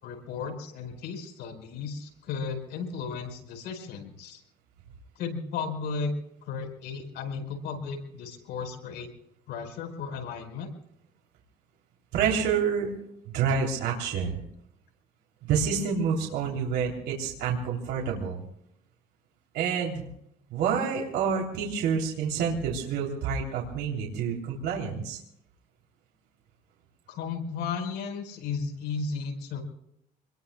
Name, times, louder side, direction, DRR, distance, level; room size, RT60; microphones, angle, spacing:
voice 1, 0.0-4.4 5.2-6.1 6.4-9.1 9.5-10.7 27.1-29.6, left 5 dB, 80° left, 4 dB, 4.8 m, -34 dB
voice 2, 12.1-12.9 13.3-14.4 15.4-18.4 19.5-20.0 20.5-25.2, right 6 dB, 85° right, -1 dB, 3.2 m, -28 dB
27.5 x 21.0 x 2.3 m, 0.75 s
cardioid pair, 110°, 17 cm